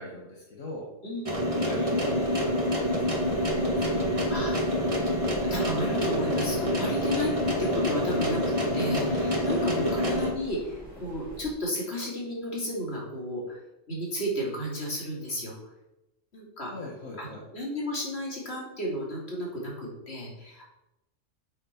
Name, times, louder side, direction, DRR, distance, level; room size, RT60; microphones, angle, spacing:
voice 1, 0.0-0.9 1.4-4.0 9.7-9.9 16.7-17.4, left 1 dB, 80° left, -2 dB, 1.9 m, -41 dB
sound 1, 1.3-10.3, equal, 25° right, 1.7 m, -27 dB
sound 2, 2.1-11.5, right 1 dB, 5° left, 3.5 m, -47 dB
voice 2, 5.5-7.3 7.6-8.4 8.7-13.6 13.9-15.5 16.3-16.9 17.2-20.6, equal, 55° left, -3 dB, 3.3 m, -33 dB
8.1 x 6.5 x 5.7 m, 0.92 s
omnidirectional pair, 1.3 m